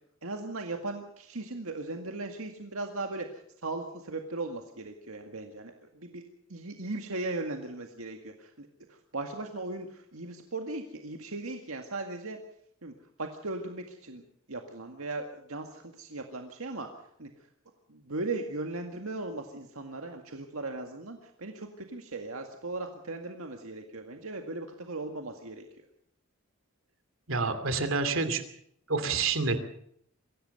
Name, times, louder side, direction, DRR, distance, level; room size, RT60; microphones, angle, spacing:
voice 1, 0.2-6.2 6.5-12.4 12.8-12.9 13.2-14.2 14.5-16.9 17.2-17.3 17.9-25.7, right 2 dB, 90° right, 4 dB, 2.0 m, -38 dB
voice 2, 27.3-28.4 28.9-29.6, right 4 dB, 70° right, 9 dB, 2.7 m, -28 dB
23.5 x 17.0 x 6.7 m, 0.69 s
head